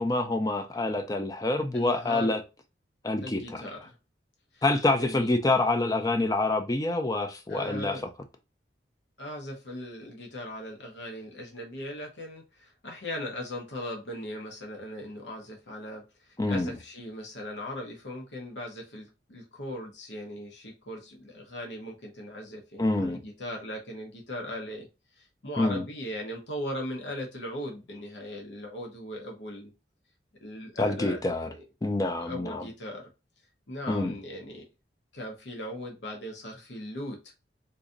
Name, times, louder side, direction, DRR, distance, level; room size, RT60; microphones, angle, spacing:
voice 1, 0.0-2.4 3.0-3.6 4.6-8.0 16.4-16.7 22.8-23.2 25.6-25.8 30.8-31.5 31.8-32.6 33.9-34.1, left 2 dB, 20° left, 0.5 m, -26 dB
voice 2, 1.7-2.3 3.2-4.0 4.5-4.6 5.0-5.3 7.5-8.1 9.2-24.9 25.1-29.7 30.4-31.7 32.2-33.1 33.7-34.6 35.1-37.2, left 1 dB, 80° left, 1.0 m, -39 dB
3.9 x 2.7 x 2.5 m
head